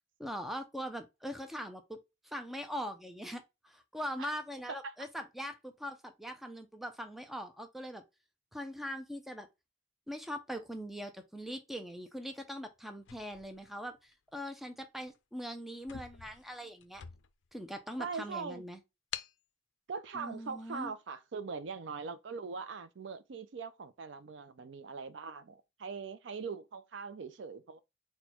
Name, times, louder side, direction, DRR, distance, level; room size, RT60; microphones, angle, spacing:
voice 1, 0.2-8.0 8.5-9.5 10.1-17.0 17.5-18.8 20.1-20.9, equal, ahead, 0.5 m, -41 dB
voice 2, 4.7-5.1 18.0-18.6 19.9-27.8, right 5 dB, 70° right, 0.5 m, -41 dB
sound 1, 13.0-14.3 15.0-15.2 15.5-15.6 15.8-17.6 18.1-18.2 19.1-19.4, left 10 dB, 75° left, 0.4 m, -47 dB
4.3 x 2.2 x 4.2 m
head